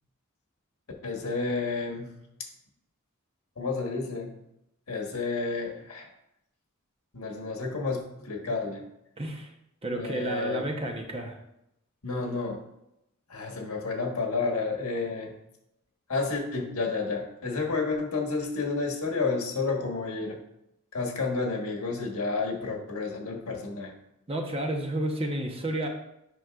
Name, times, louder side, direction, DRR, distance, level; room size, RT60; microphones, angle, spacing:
voice 1, 1.0-2.1 3.6-4.4 4.9-6.1 7.1-8.8 9.9-10.7 12.0-12.6 13.3-15.3 16.1-20.4 20.9-23.9, left 4 dB, 85° left, 1 dB, 1.4 m, -30 dB
voice 2, 9.2-9.5 9.8-11.4 24.3-25.9, right 1 dB, 25° right, 2 dB, 0.9 m, -31 dB
9.0 x 5.4 x 2.4 m, 0.84 s
head